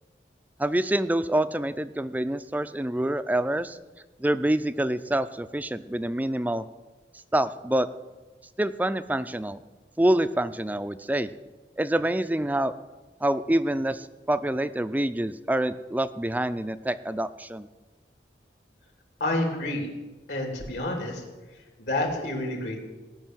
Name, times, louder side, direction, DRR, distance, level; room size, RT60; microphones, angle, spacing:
voice 1, 0.6-3.8 4.2-6.6 7.3-7.9 8.6-9.6 10.0-11.3 11.8-12.7 13.2-17.7, right 1 dB, 10° right, 13 dB, 0.4 m, -26 dB
voice 2, 19.2-19.9 20.3-21.2 21.5-22.8, left 1 dB, 80° left, 1 dB, 3.1 m, -29 dB
17.0 x 6.4 x 9.1 m, 1.2 s
head